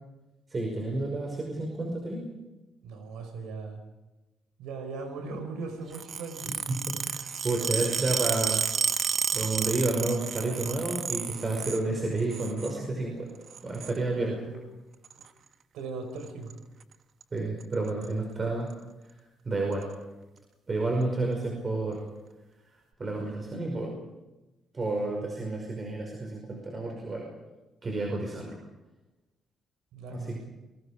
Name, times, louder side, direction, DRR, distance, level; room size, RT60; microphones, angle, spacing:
voice 1, 0.5-2.2 6.7-8.6 9.3-13.3 13.6-14.4 17.3-18.7 19.5-19.9 20.7-22.0 23.0-23.9 24.7-27.3 27.8-28.6 30.1-30.4, right 2 dB, 35° right, 1 dB, 5.5 m, -30 dB
voice 2, 2.8-3.8 4.6-6.5 14.2-14.6 15.2-15.3 15.7-16.5 29.9-30.3, right 4 dB, 90° right, 6 dB, 5.3 m, -39 dB
sound 1, 5.9-11.8 12.2-12.7 13.5-14.0 15.0-15.3 16.2-16.5 16.8-16.9 17.2-17.3 17.6-18.1 18.7-18.8 19.7-19.8, right 7 dB, 55° right, 1.3 m, -31 dB
28.5 x 22.0 x 5.1 m, 1.1 s
cardioid pair, 90°, 0 cm